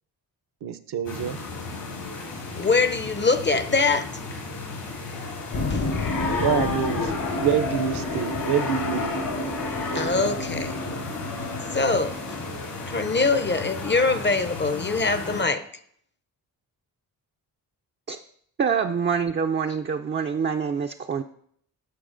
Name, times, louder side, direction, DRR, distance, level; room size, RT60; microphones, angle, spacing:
voice 1, 0.6-1.4 6.4-9.1, right 8 dB, 60° right, 0.7 m, -26 dB
sound 1, 1.0-15.4, left 3 dB, 75° left, 2.2 m, -32 dB
voice 2, 2.5-4.2 5.7-5.9 9.9-10.9 11.7-12.2 12.9-15.6, left 3 dB, 25° left, 0.5 m, -23 dB
sound 2, 5.5-12.5, left 2 dB, 55° left, 1.0 m, -31 dB
voice 3, 18.6-21.2, right 6 dB, 25° right, 0.4 m, -25 dB
13.5 x 4.8 x 2.5 m
supercardioid pair, 40°, 44 cm